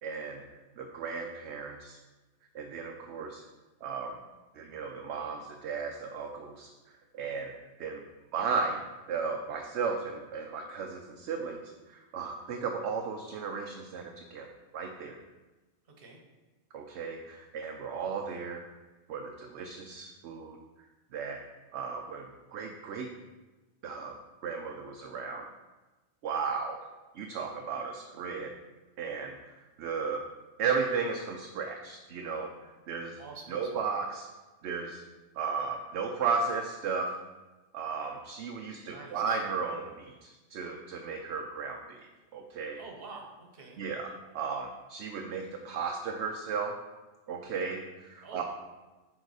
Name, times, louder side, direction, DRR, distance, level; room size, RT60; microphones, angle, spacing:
voice 1, 0.0-0.4 0.8-2.0 2.5-3.4 3.8-4.2 4.5-6.7 7.1-7.5 7.8-8.0 8.3-8.8 9.1-11.6 11.9-14.5 14.7-15.2 16.7-18.7 19.1-20.6 21.1-21.4 21.7-23.1 23.8-25.5 26.2-26.8 27.1-28.5 29.0-30.2 30.6-33.2 33.5-34.3 34.6-35.0 35.3-37.2 37.7-42.8 43.8-46.7 47.3-48.4, right 5 dB, 70° right, 3 dB, 0.8 m, -35 dB
voice 2, 33.2-33.8 38.8-39.4 42.8-43.8 48.2-48.4, right 4 dB, 50° right, 1 dB, 1.2 m, -47 dB
6.5 x 3.9 x 4.7 m, 1.2 s
omnidirectional pair, 1.2 m